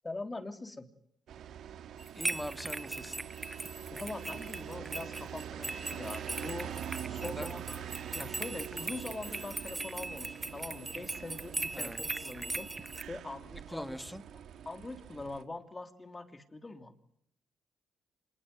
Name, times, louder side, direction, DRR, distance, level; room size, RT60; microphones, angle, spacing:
voice 1, 0.0-0.9 3.9-6.7 7.1-7.8 8.1-12.7 13.1-14.1 14.6-16.9, left 2 dB, 20° left, 7 dB, 3.2 m, -43 dB
sound 1, 1.3-15.4, right 9 dB, 70° right, 1.7 m, -44 dB
sound 2, 2.0-13.0, right 2 dB, 20° right, 1.0 m, -40 dB
voice 2, 2.2-3.2 7.2-7.5 11.7-12.0 13.7-14.2, equal, ahead, 9 dB, 2.0 m, -41 dB
26.5 x 20.5 x 9.4 m, 0.72 s
cardioid pair, 90°, 0 cm